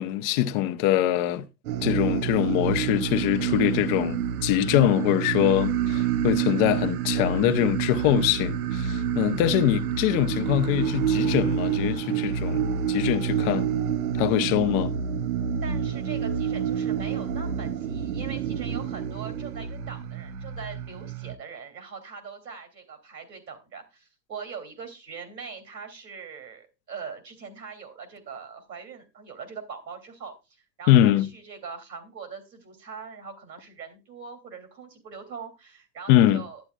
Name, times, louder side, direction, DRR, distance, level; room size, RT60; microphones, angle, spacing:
voice 1, 0.0-1.5 1.8-13.7 14.1-14.9 30.9-31.3 36.1-36.4, left 13 dB, 35° left, 0.8 m, -23 dB
sound 1, 1.7-21.3, right 8 dB, 60° right, 0.8 m, -28 dB
voice 2, 15.6-36.6, right 5 dB, 80° right, 3.0 m, -41 dB
11.5 x 9.8 x 2.4 m
figure-of-eight pair, 100°, 50 cm